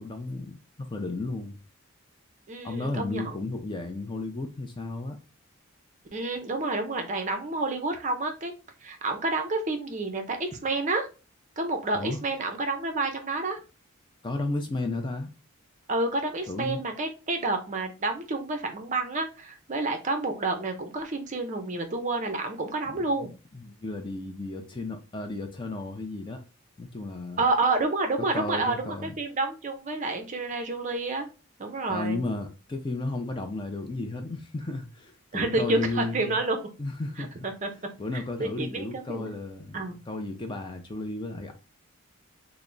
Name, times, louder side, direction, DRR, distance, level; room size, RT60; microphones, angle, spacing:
voice 1, 0.0-1.6 2.6-5.2 11.9-12.2 14.2-15.3 16.5-16.8 22.9-23.1 23.5-26.4 26.8-27.4 28.2-29.1 31.9-36.4 36.8-37.5 38.0-41.5, left 2 dB, 20° left, 0.4 m, -34 dB
voice 2, 2.5-3.3 6.1-8.5 8.8-11.1 11.6-13.6 15.9-23.3 27.4-31.3 31.6-32.2 35.3-36.6 37.2-37.7 38.1-39.3 39.7-40.0, right 2 dB, 35° right, 0.5 m, -29 dB
3.3 x 2.0 x 3.8 m
head